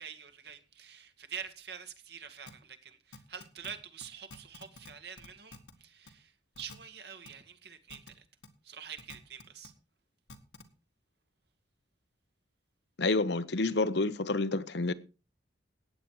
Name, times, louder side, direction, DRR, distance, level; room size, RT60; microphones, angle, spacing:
voice 1, 0.0-8.3 8.6-9.7, right 7 dB, 55° right, 2.0 m, -46 dB
sound 1, 2.5-2.6 3.1-3.7 4.0-4.1 4.3-4.9 5.2-5.7 6.1-6.2 6.6-6.8 7.3-7.4 7.9-8.1 8.4-8.5 9.0-9.7 10.3-10.6, left 3 dB, 90° left, 2.0 m, -49 dB
voice 2, 13.0-14.9, left 3 dB, 65° left, 0.9 m, -29 dB
15.0 x 9.6 x 4.8 m
head